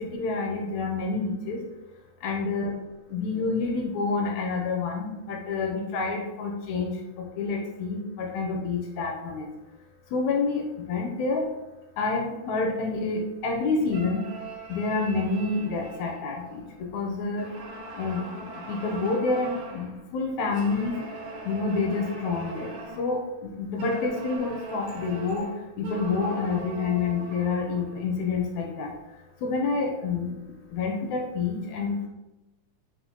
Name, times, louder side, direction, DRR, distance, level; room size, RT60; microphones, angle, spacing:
voice 1, 0.0-1.6 2.2-2.7 3.1-6.9 7.2-9.5 10.1-11.4 12.0-14.2 14.7-17.5 18.0-21.0 21.5-23.2 23.6-25.5 25.8-28.9 29.4-30.3 30.7-32.1, left 4 dB, 80° left, 1 dB, 1.7 m, -28 dB
sound 1, 13.9-16.9 17.4-20.0 20.5-23.1 23.8-28.0, right 2 dB, 85° right, 1.0 m, -41 dB
5.7 x 2.4 x 2.7 m, 1.0 s
omnidirectional pair, 3.6 m